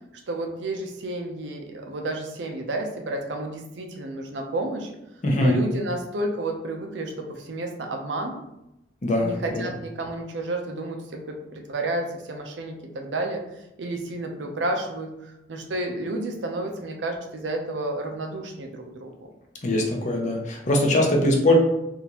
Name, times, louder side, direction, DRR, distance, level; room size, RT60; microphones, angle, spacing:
voice 1, 0.3-4.9 5.4-8.4 9.2-13.4 13.8-19.1, right 2 dB, 85° right, 3 dB, 0.6 m, -31 dB
voice 2, 5.2-5.6 9.0-9.6 19.6-21.5, left 1 dB, 45° left, 1 dB, 0.7 m, -22 dB
3.7 x 2.5 x 2.8 m, 0.87 s
head